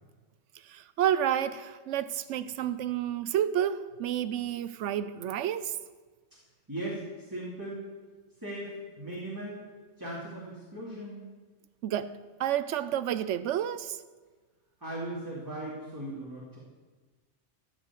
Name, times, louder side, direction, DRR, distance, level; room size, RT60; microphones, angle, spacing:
voice 1, 0.6-5.8 11.8-14.0, right 10 dB, 80° right, 1.0 m, -30 dB
voice 2, 6.7-7.8 8.4-9.6 10.0-11.3 14.8-16.6, right 1 dB, 15° right, 2.6 m, -38 dB
14.5 x 6.3 x 8.4 m
omnidirectional pair, 1.2 m